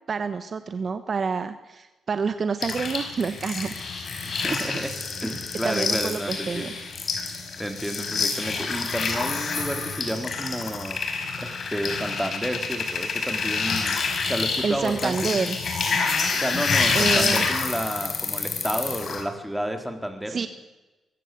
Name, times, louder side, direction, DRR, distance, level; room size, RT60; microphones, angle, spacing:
voice 1, 0.1-3.7 5.6-6.7 14.6-15.6 16.9-17.4 20.3-20.5, right 5 dB, 45° right, 10 dB, 1.3 m, -28 dB
sound 1, 2.6-19.2, left 4 dB, 55° left, 5.1 m, -28 dB
voice 2, 4.2-4.9 5.2-6.8 7.6-11.0 11.4-14.0 14.3-15.4 16.3-20.5, equal, 5° right, 5 dB, 3.9 m, -31 dB
23.5 x 15.0 x 7.9 m, 1.1 s
cardioid pair, 80°, 0 cm